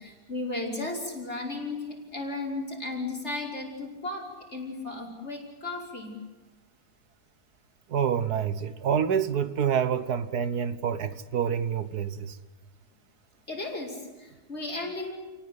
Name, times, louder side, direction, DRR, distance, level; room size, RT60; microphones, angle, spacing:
voice 1, 0.0-6.2 13.5-15.1, left 2 dB, 45° left, 5.7 m, -35 dB
voice 2, 7.9-12.4, right 8 dB, 75° right, 1.7 m, -27 dB
29.5 x 19.0 x 8.1 m
omnidirectional pair, 1.7 m